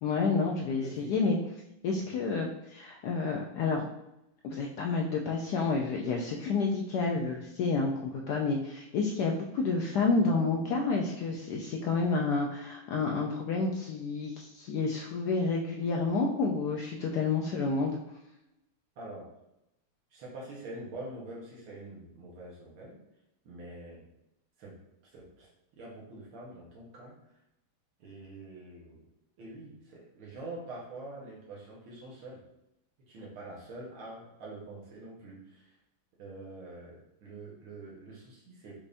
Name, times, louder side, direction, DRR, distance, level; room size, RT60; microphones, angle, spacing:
voice 1, 0.0-1.4 1.8-3.9 4.4-18.0, left 4 dB, 80° left, 0 dB, 0.9 m, -29 dB
voice 2, 0.8-1.2 2.1-2.2 19.0-19.3 20.1-23.0 23.5-24.1 24.6-25.5 25.8-27.2 28.0-29.1 29.4-32.4 33.1-35.7 36.2-38.8, right 2 dB, 75° right, -4 dB, 1.8 m, -45 dB
5.3 x 2.5 x 3.4 m, 0.87 s
omnidirectional pair, 2.3 m